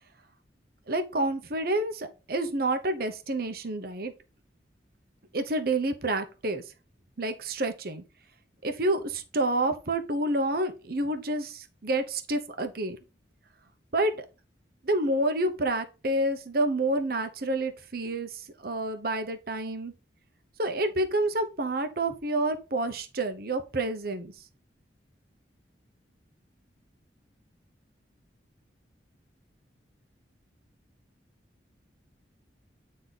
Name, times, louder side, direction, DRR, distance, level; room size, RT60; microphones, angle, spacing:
voice 1, 0.9-4.1 5.3-6.7 7.2-8.0 8.6-13.0 13.9-14.3 14.8-19.9 20.6-24.5, right 2 dB, 55° right, 1.0 m, -29 dB
9.3 x 3.8 x 4.0 m
head